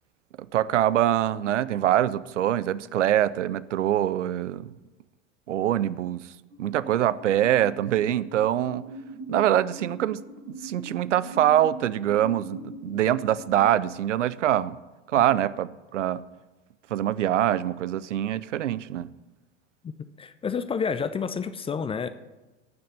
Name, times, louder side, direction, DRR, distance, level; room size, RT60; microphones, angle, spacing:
voice 1, 0.5-4.7 5.5-6.2 6.6-8.9 9.3-10.2 10.5-14.8 15.1-16.2 16.9-19.1, right 11 dB, 70° right, 0.6 m, -24 dB
sound 1, 6.5-13.7, right 2 dB, 90° right, 5.3 m, -42 dB
voice 2, 20.2-22.1, left 6 dB, 15° left, 0.5 m, -29 dB
18.0 x 6.5 x 6.9 m
figure-of-eight pair, 80°, 37 cm